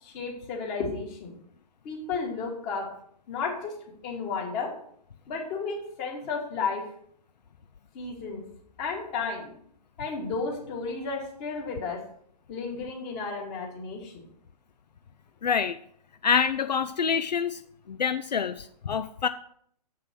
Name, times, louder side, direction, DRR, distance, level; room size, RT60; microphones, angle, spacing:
voice 1, 0.0-1.4 1.8-2.9 3.3-3.8 4.0-4.7 5.3-6.9 7.9-8.4 8.8-9.5 10.0-12.0 12.5-14.2, left 4 dB, 30° left, 0 dB, 2.6 m, -33 dB
voice 2, 15.4-15.8 16.2-17.6 17.9-19.3, left 6 dB, 80° left, 11 dB, 0.5 m, -26 dB
7.7 x 5.6 x 6.2 m, 0.65 s
figure-of-eight pair, 120°, 21 cm